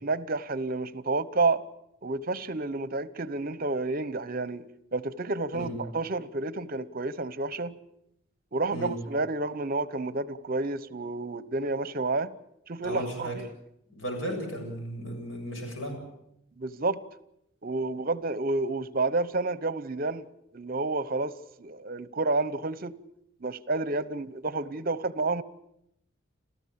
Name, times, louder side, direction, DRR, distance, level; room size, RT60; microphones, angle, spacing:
voice 1, 0.0-1.6 2.0-4.7 4.9-7.7 8.5-12.3 12.7-13.4 16.6-17.0 17.6-20.3 20.5-21.3 21.6-22.9 23.4-25.4, right 3 dB, 45° right, 0.9 m, -30 dB
voice 2, 12.8-13.4 13.9-16.0, equal, 80° left, 7.6 m, -35 dB
30.0 x 14.0 x 8.7 m
head